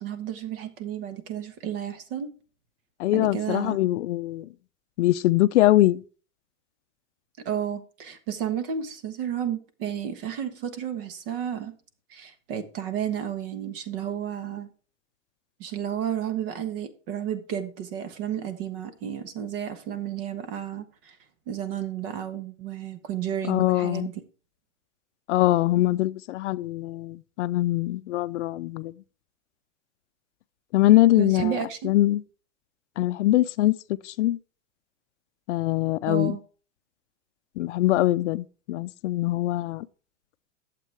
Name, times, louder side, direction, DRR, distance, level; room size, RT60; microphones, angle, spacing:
voice 1, 0.0-2.3 3.1-3.8 7.4-11.7 12.1-14.7 15.6-21.2 21.5-24.2 31.2-32.0 36.1-36.4, right 9 dB, 45° right, 1.3 m, -32 dB
voice 2, 3.0-4.5 5.0-6.0 23.5-24.1 25.3-28.9 30.7-31.6 31.8-32.2 33.0-33.7 34.0-34.4 35.5-36.4 37.6-39.9, left 16 dB, 65° left, 0.5 m, -22 dB
11.5 x 7.5 x 3.4 m
supercardioid pair, 165°, 39 cm